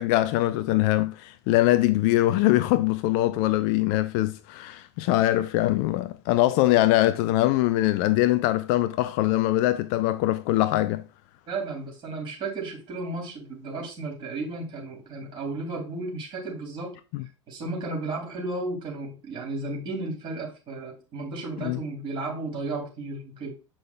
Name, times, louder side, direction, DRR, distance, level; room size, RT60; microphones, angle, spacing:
voice 1, 0.0-11.0 17.1-17.2 21.6-21.8, left 16 dB, 40° left, 0.4 m, -22 dB
voice 2, 11.5-17.0 17.5-23.5, right 2 dB, 30° right, 2.8 m, -34 dB
7.6 x 5.6 x 2.2 m
figure-of-eight pair, 90°, 16 cm